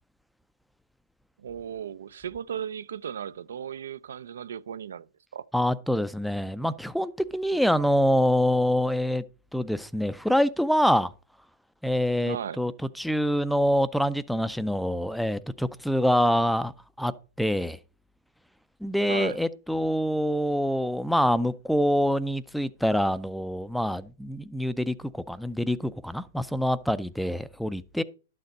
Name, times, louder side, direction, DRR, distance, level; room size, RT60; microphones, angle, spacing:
voice 1, 1.4-5.1 5.3-5.4 12.3-12.6 19.1-19.4, right 8 dB, 80° right, 0.4 m, -36 dB
voice 2, 5.5-9.2 9.5-11.1 11.8-12.7 13.0-16.7 17.0-17.1 17.4-17.8 18.8-28.0, equal, ahead, 0.4 m, -25 dB
11.5 x 6.6 x 4.0 m
hypercardioid pair, 145°, 0 cm